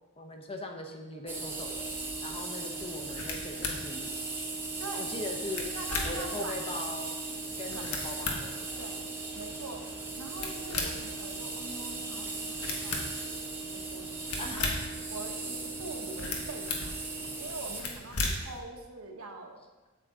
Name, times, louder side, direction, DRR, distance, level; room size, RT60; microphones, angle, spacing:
voice 1, 0.2-1.9 2.2-4.1 5.0-5.6 6.0-7.2 7.6-8.7 14.4-14.6, left 2 dB, 25° left, 3 dB, 0.8 m, -40 dB
Brass instrument, 1.1-17.5, right 5 dB, 30° right, 0.6 m, -44 dB
sound 1, 1.3-17.8, right 3 dB, 10° right, 0.9 m, -39 dB
sound 2, 2.7-18.6, left 3 dB, 90° left, 1.4 m, -39 dB
voice 2, 5.7-6.7 7.7-7.9 8.8-9.0 9.3-9.8 10.2-14.7 15.1-17.0 17.4-19.6, right 3 dB, 75° right, 3 dB, 1.1 m, -44 dB
8.2 x 7.8 x 3.8 m, 1.2 s
head